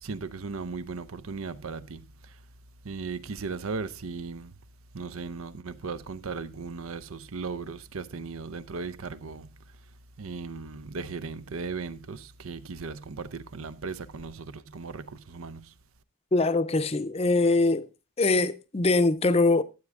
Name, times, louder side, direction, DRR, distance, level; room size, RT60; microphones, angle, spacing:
voice 1, 0.0-2.4 2.8-4.5 4.9-9.5 10.2-15.7, right 4 dB, 85° right, 0.7 m, -37 dB
voice 2, 16.3-17.9 18.2-19.6, left 3 dB, 30° left, 0.6 m, -23 dB
13.0 x 7.8 x 3.7 m
head